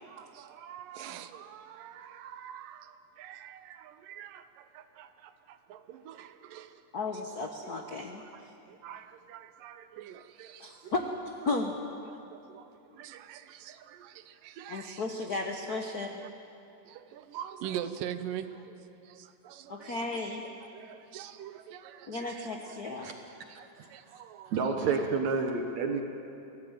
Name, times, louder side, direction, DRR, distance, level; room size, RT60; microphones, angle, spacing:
voice 1, 0.0-6.8 7.8-10.9 12.0-15.0 15.7-15.8 16.2-16.3 16.9-20.0 20.6-23.1 23.5-24.9, right 10 dB, 90° right, 10 dB, 2.6 m, -45 dB
voice 2, 6.9-8.5 10.6-11.8 14.7-16.2 19.7-20.4 22.1-23.1, left 3 dB, 70° left, 2 dB, 0.9 m, -34 dB
voice 3, 23.8-24.2 24.4-26.0, right 4 dB, 65° right, 3 dB, 2.4 m, -30 dB
25.0 x 17.0 x 9.1 m, 2.9 s
omnidirectional pair, 3.7 m